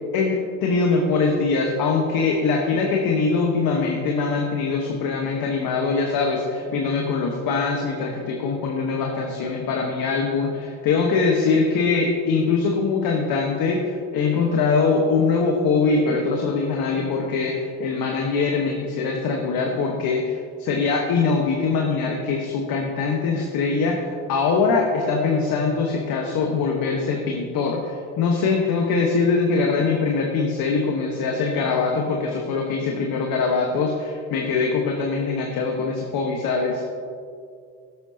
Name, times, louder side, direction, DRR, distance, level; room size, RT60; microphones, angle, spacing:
voice 1, 0.1-36.8, left 4 dB, 65° left, 0 dB, 1.4 m, -22 dB
17.0 x 8.1 x 2.9 m, 2.3 s
hypercardioid pair, 65°, 38 cm